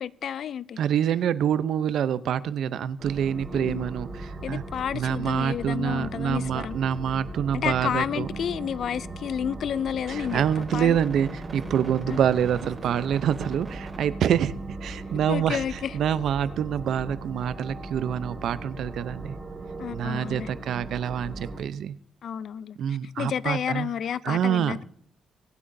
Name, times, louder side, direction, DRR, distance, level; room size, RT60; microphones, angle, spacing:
voice 1, 0.0-0.8 3.5-3.9 4.4-6.8 7.5-11.0 12.1-12.2 15.3-15.9 19.8-20.5 22.2-24.8, left 8 dB, 60° left, 0.4 m, -31 dB
voice 2, 0.8-4.6 4.9-8.3 10.1-19.4 19.9-22.0 22.8-23.9 24.2-24.8, right 9 dB, 70° right, 0.6 m, -26 dB
sound 1, 3.0-21.6, right 2 dB, 30° right, 3.2 m, -38 dB
23.5 x 8.4 x 2.7 m
cardioid pair, 90°, 0 cm